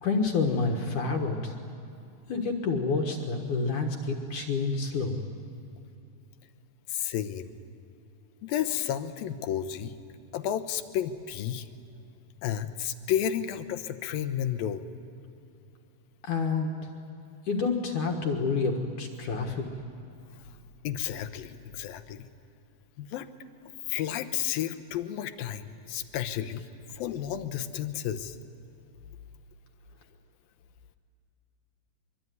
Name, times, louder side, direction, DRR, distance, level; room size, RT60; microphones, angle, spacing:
voice 1, 0.0-1.5 2.3-5.2 16.2-16.7 17.5-19.6, left 4 dB, 65° left, 2 dB, 2.9 m, -28 dB
voice 2, 6.9-7.5 8.4-9.9 10.3-11.7 12.4-14.8 20.8-22.3 23.0-23.3 23.9-26.6 26.9-28.3, left 10 dB, 90° left, 10 dB, 2.8 m, -32 dB
24.0 x 24.0 x 9.5 m, 2.8 s
omnidirectional pair, 4.1 m